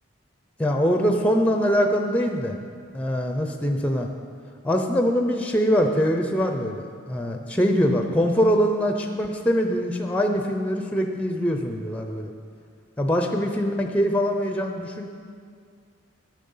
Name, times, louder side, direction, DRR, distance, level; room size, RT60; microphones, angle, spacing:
voice 1, 0.6-2.5 2.9-4.1 4.6-12.3 13.0-15.1, equal, 5° left, 4 dB, 0.5 m, -23 dB
11.0 x 7.3 x 5.5 m, 2.2 s
head